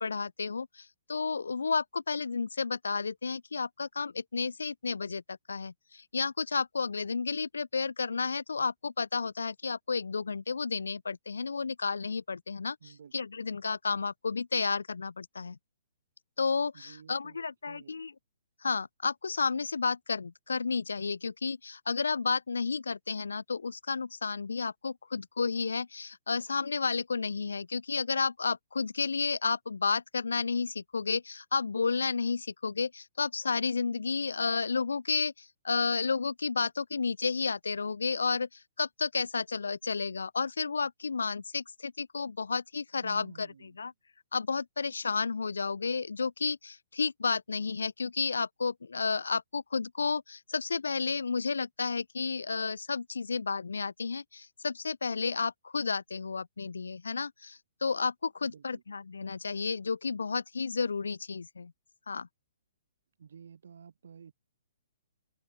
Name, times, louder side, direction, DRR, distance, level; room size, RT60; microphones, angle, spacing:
voice 1, 0.0-15.6 16.4-18.1 18.6-43.5 43.8-43.9 44.3-61.7 62.1-62.3, left 5 dB, 90° left, 0.5 m, -32 dB
voice 2, 12.8-13.1 16.7-18.0 43.0-43.8 58.4-58.8 63.2-64.3, right 7 dB, 70° right, 3.6 m, -52 dB
hypercardioid pair, 140°, 0 cm